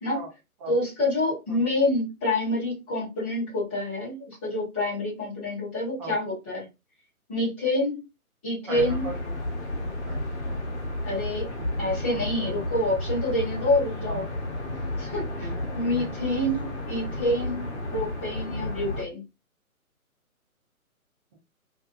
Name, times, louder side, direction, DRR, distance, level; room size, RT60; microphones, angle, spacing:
voice 1, 0.7-6.7 7.3-8.0 8.4-9.1 11.0-11.5 11.8-14.2 15.0-15.2 15.7-19.2, left 1 dB, 5° left, -9 dB, 0.6 m, -27 dB
sound 1, 8.7-19.0, left 1 dB, 50° left, 0.9 m, -32 dB
voice 2, 8.7-9.4 10.0-10.6 11.6-12.7 13.5-13.6 14.1-14.3 15.4-15.5 15.9-16.1 21.3-21.4, right 3 dB, 25° right, -2 dB, 0.9 m, -40 dB
2.6 x 2.4 x 2.4 m, 0.25 s
figure-of-eight pair, 140°, 44 cm